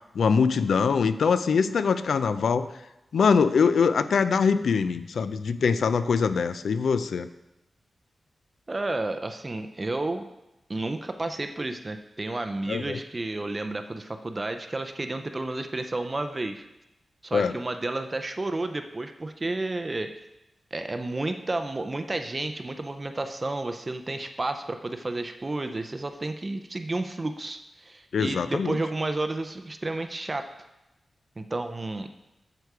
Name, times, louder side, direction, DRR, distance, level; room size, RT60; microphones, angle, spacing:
voice 1, 0.1-2.7 3.1-7.3 12.7-13.0 17.3-17.6 28.1-28.7, left 5 dB, 80° left, 12 dB, 0.4 m, -23 dB
voice 2, 8.7-10.2 10.7-16.6 17.2-20.1 20.7-30.5 31.4-32.1, right 2 dB, 25° right, 7 dB, 0.4 m, -31 dB
8.0 x 6.8 x 4.8 m, 0.94 s
wide cardioid pair, 175°, 0 cm